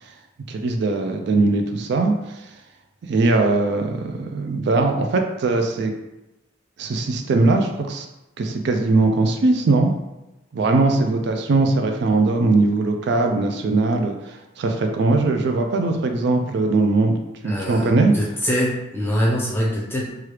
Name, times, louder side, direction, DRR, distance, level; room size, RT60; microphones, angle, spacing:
voice 1, 0.5-2.5 3.1-5.9 6.8-8.1 8.4-9.9 10.5-17.2 17.4-18.1, right 3 dB, 60° right, 4 dB, 0.3 m, -20 dB
voice 2, 17.4-20.1, equal, 10° left, -3 dB, 0.6 m, -24 dB
3.1 x 2.3 x 3.1 m, 0.97 s
head